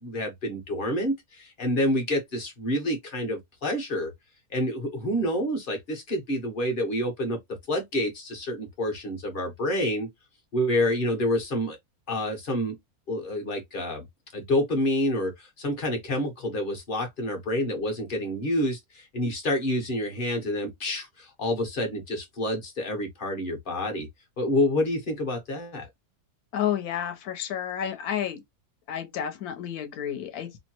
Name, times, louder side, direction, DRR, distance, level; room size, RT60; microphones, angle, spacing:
voice 1, 0.0-4.1 4.5-7.4 7.7-10.1 10.5-11.8 12.1-12.7 13.1-14.1 14.3-24.1 24.4-25.9, left 1 dB, 40° left, 0.8 m, -28 dB
voice 2, 26.5-28.4 28.9-30.6, left 9 dB, 70° left, 1.2 m, -30 dB
2.9 x 2.1 x 2.8 m
omnidirectional pair, 1.7 m